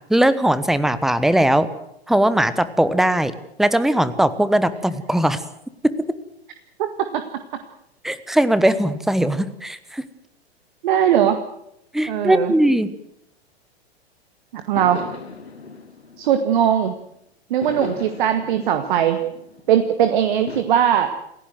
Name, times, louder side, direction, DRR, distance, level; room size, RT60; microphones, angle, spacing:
voice 1, 0.1-1.7 2.1-3.3 3.6-5.4 8.0-10.0 11.9-12.9, right 1 dB, ahead, 14 dB, 1.1 m, -19 dB
voice 2, 6.8-7.2 10.8-11.4 12.1-12.5 14.5-15.0 16.2-16.9 17.5-19.2 19.7-21.1, right 9 dB, 50° right, 7 dB, 1.9 m, -19 dB
sound 1, 14.8-17.0 17.6-19.9 20.5-20.6, left 4 dB, 75° left, 2.9 m, -36 dB
28.5 x 15.5 x 7.8 m, 0.80 s
figure-of-eight pair, 100°, 32 cm